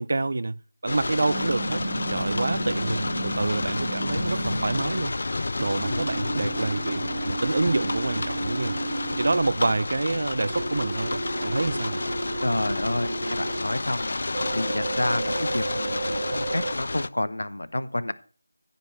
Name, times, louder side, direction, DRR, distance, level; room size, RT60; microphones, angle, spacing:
voice 1, 0.0-1.8 2.1-5.2 5.6-8.7 9.2-12.0, right 2 dB, 50° right, 0.4 m, -27 dB
sound 1, 0.9-17.1, left 2 dB, 50° left, 0.4 m, -30 dB
sound 2, 1.3-4.8 5.8-9.4 10.5-13.6 14.3-16.7, right 3 dB, 30° right, 1.1 m, -33 dB
voice 2, 12.4-18.1, left 1 dB, 65° left, 0.8 m, -29 dB
14.5 x 5.3 x 4.4 m
figure-of-eight pair, 165°, 0 cm